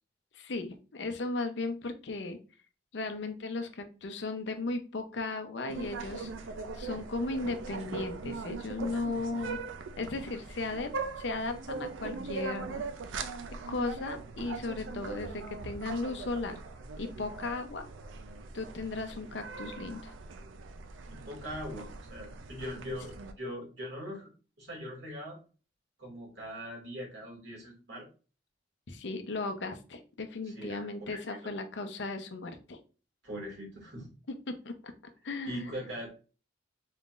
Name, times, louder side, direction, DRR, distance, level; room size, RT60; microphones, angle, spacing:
voice 1, 0.3-2.4 2.9-6.3 6.7-9.6 10.0-10.9 11.2-12.8 13.7-16.6 17.0-17.9 18.5-20.1 28.9-32.8 34.5-34.9 35.2-35.8, left 3 dB, 70° left, 7 dB, 0.6 m, -36 dB
sound 1, 5.7-23.3, right 4 dB, 85° right, 0.5 m, -41 dB
voice 2, 21.1-24.3 24.6-25.4 26.0-28.1 30.4-31.5 33.2-34.1 35.5-36.1, equal, 60° right, -2 dB, 2.3 m, -41 dB
4.1 x 3.8 x 2.5 m, 0.35 s
head